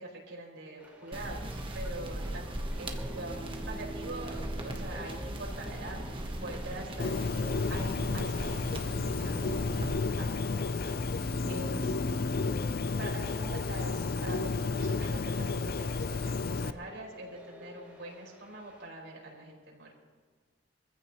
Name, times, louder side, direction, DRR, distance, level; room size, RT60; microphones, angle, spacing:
voice 1, 0.0-3.3 3.7-6.0 6.4-7.4 7.7-12.0 13.0-19.9, right 1 dB, 85° right, -3 dB, 5.2 m, -44 dB
sound 1, 0.8-18.9, right 1 dB, 10° right, 3.1 m, -47 dB
sound 2, 1.1-9.9, right 1 dB, 30° right, 1.2 m, -38 dB
Bird, 7.0-16.7, left 4 dB, 55° left, 0.5 m, -32 dB
24.0 x 15.0 x 3.1 m, 1.4 s
head